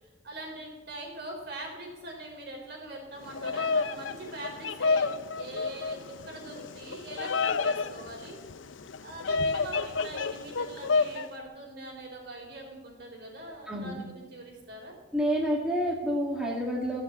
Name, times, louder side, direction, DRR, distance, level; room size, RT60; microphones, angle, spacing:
voice 1, 0.0-6.0 6.2-8.4 9.0-14.9, right 1 dB, 55° right, 0 dB, 4.4 m, -42 dB
Bird vocalization bird call bird song, 3.2-11.3, left 4 dB, 75° left, 0.7 m, -30 dB
voice 2, 13.7-14.0 15.1-17.0, equal, 5° right, -3 dB, 2.1 m, -28 dB
15.5 x 7.1 x 8.5 m, 1.2 s
head